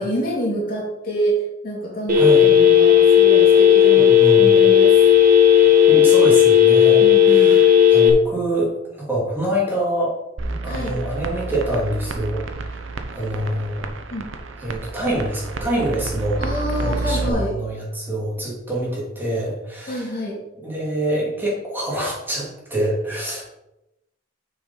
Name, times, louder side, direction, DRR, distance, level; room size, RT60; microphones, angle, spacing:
voice 1, 0.0-1.3 1.6-5.0 7.0-7.6 10.6-11.0 14.1-14.2 16.4-17.5 19.9-20.4, equal, 50° left, -4 dB, 3.0 m, -27 dB
Telephone, 2.1-8.1, left 9 dB, 45° right, 1.5 m, -13 dB
voice 2, 3.9-4.5 5.9-10.1 10.5-13.9 14.6-16.4 16.8-20.1 20.6-23.4, right 1 dB, 10° right, -5 dB, 2.4 m, -26 dB
sound 1, 10.4-17.3, right 3 dB, 80° right, 0.9 m, -30 dB
6.9 x 5.5 x 5.4 m, 0.93 s
head